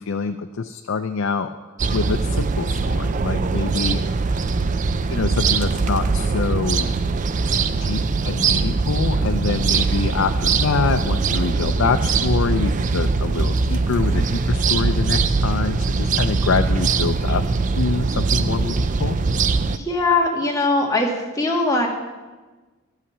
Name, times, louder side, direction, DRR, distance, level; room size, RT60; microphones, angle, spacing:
voice 1, 0.0-1.5 1.9-4.0 5.1-6.9 7.8-17.4 17.8-19.2, left 4 dB, 75° left, 7 dB, 0.5 m, -25 dB
sound 1, 1.8-19.8, right 4 dB, 35° right, 0.4 m, -21 dB
voice 2, 19.7-21.9, left 2 dB, 15° left, 0 dB, 1.5 m, -21 dB
12.0 x 5.7 x 7.3 m, 1.2 s
head